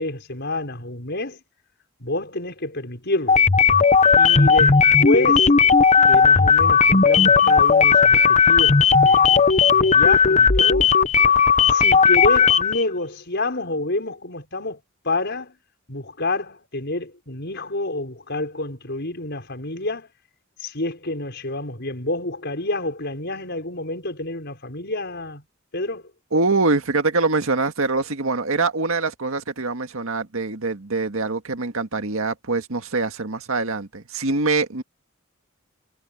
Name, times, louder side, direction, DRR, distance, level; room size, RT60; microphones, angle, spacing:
voice 1, 0.0-1.4 2.0-3.4 4.2-5.5 6.0-11.0 11.7-15.5 15.9-20.1 20.6-25.4 25.7-26.0, left 2 dB, 55° left, 5.4 m, -28 dB
sound 1, 3.3-12.8, left 5 dB, 35° left, 0.9 m, -15 dB
voice 2, 26.3-34.8, right 3 dB, 75° right, 1.8 m, -24 dB
head